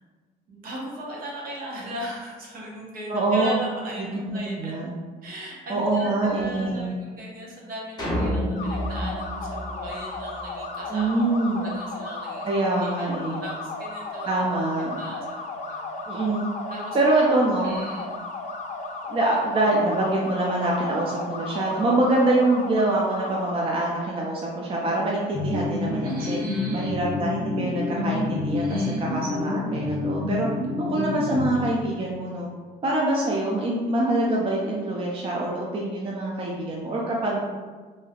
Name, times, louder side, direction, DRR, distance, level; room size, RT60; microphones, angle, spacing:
voice 1, 0.5-4.7 5.2-12.5 12.8-13.1 13.4-14.3 15.0-16.0 16.7-17.0 17.6-18.1 26.0-26.9 28.6-29.0, equal, 60° right, -3 dB, 0.9 m, -38 dB
voice 2, 3.1-3.5 4.0-4.9 5.7-7.0 10.9-11.7 12.5-13.4 14.3-15.0 16.1-16.4 16.9-17.8 19.1-26.4 26.7-30.5 30.8-32.5 32.8-37.4, right 2 dB, 35° right, -3 dB, 0.5 m, -25 dB
sound 1, 8.0-10.4, equal, 25° left, 0.8 m, -28 dB
sound 2, 8.5-23.5, left 3 dB, 45° left, 0.5 m, -35 dB
sound 3, 25.3-32.0, left 2 dB, 5° left, 1.3 m, -28 dB
3.3 x 2.7 x 2.3 m, 1.4 s
cardioid pair, 110°, 17 cm